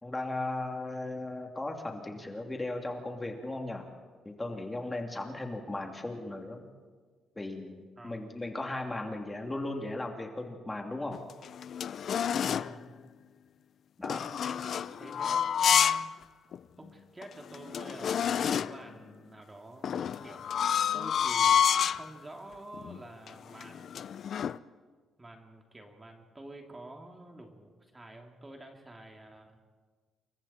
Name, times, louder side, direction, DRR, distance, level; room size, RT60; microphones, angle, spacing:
voice 1, 0.0-3.8 4.2-6.7 7.4-11.2 14.0-14.2, left 2 dB, 15° left, 2 dB, 2.9 m, -37 dB
voice 2, 8.0-8.3 12.3-13.1 14.4-16.2 16.8-24.1 25.2-29.6, right 1 dB, 20° right, 3 dB, 2.7 m, -49 dB
sound 1, 11.1-12.7 14.0-16.1 16.5-16.6 17.2-17.3 17.5-18.9 19.8-22.1 22.7-23.0 23.3-24.6, left 8 dB, 60° left, 0.5 m, -29 dB
29.0 x 23.0 x 4.4 m, 1.5 s
cardioid pair, 90°, 0 cm